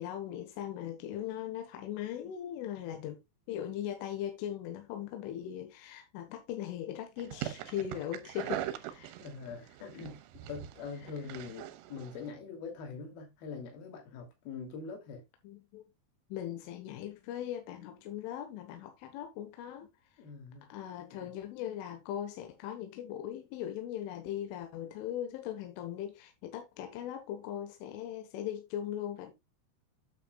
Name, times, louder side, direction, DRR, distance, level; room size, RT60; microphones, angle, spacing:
voice 1, 0.0-3.2 3.5-9.2 11.0-11.1 15.4-15.8 16.3-19.9 20.7-29.3, left 11 dB, 80° left, 3.6 m, -39 dB
sound 1, 7.2-12.3, right 13 dB, 85° right, 3.1 m, -42 dB
voice 2, 9.2-10.2 10.5-15.2 20.2-20.7 21.1-21.3, left 5 dB, 55° left, 4.2 m, -43 dB
9.2 x 8.8 x 2.3 m
omnidirectional pair, 5.7 m